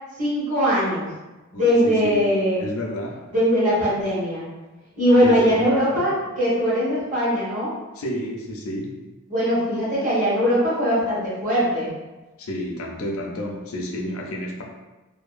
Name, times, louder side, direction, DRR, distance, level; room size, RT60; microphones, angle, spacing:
voice 1, 0.2-1.0 1.5-2.6 3.3-4.5 4.9-7.7 9.3-11.9, equal, 35° right, -9 dB, 1.1 m, -21 dB
voice 2, 1.5-2.2 2.6-3.3 5.2-5.6 8.0-9.1 12.4-14.6, equal, 70° left, 1 dB, 0.5 m, -30 dB
2.6 x 2.2 x 2.4 m, 1.1 s
head